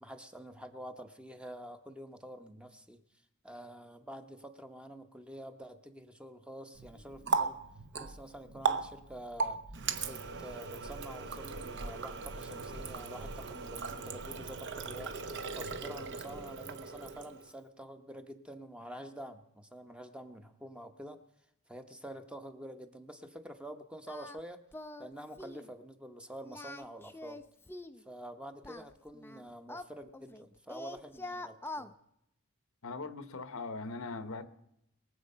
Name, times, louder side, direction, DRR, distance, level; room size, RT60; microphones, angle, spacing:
voice 1, 0.0-3.0 3.4-7.6 8.0-9.6 10.0-15.2 15.5-21.2 21.7-24.6 25.0-27.4 28.0-31.9, right 1 dB, 5° right, 0.8 m, -47 dB
Water tap faucet, 6.8-17.5, right 4 dB, 55° right, 0.9 m, -38 dB
Singing, 24.1-24.4 24.7-25.1 25.4-25.7 26.4-28.0 28.6-30.4 30.7-31.9, left 2 dB, 10° left, 0.5 m, -44 dB
voice 2, 32.8-34.5, left 3 dB, 65° left, 0.9 m, -40 dB
22.5 x 7.6 x 5.5 m
head